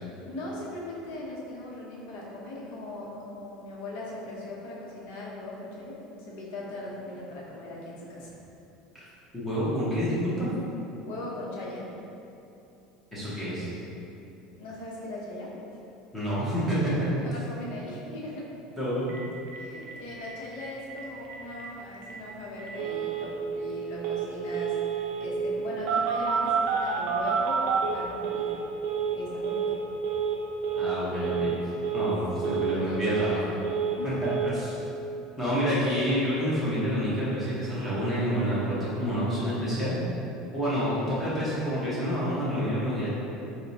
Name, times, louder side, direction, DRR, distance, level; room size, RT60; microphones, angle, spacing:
voice 1, 0.2-8.4 11.1-11.9 14.6-15.5 17.2-18.4 19.5-28.6 29.2-29.6 32.3-33.6 34.0-34.5, left 1 dB, 70° left, -4 dB, 0.7 m, -39 dB
voice 2, 9.3-10.5 13.1-13.7 16.1-17.4 18.8-19.1 30.7-33.4 34.0-34.7 35.4-39.9 40.5-43.1, equal, 10° left, -11 dB, 0.7 m, -28 dB
Telephone, 19.1-19.2 19.5-19.6 19.8-19.9 20.2-20.6 20.9-21.0 21.2-21.6 22.0-22.1 22.6-23.3 24.0-24.3 24.5-25.3 25.9-28.6 28.8-29.2 29.4-29.8 30.0-30.4 30.6-31.0 31.2-31.6 31.8-32.2 32.4-33.4 33.6-34.0 34.2-34.5, right 7 dB, 65° right, 0.5 m, -28 dB
4.1 x 2.1 x 2.6 m, 2.9 s
cardioid pair, 155°, 0 cm